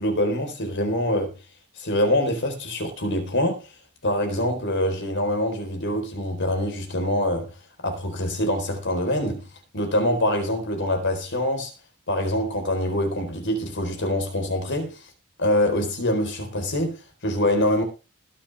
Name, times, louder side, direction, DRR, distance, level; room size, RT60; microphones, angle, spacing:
voice 1, 0.0-1.3 1.8-3.6 4.0-7.5 7.8-9.5 9.7-11.7 12.1-15.0 15.4-17.8, left 1 dB, 55° left, 4.2 m, -24 dB
20.0 x 7.3 x 3.5 m
head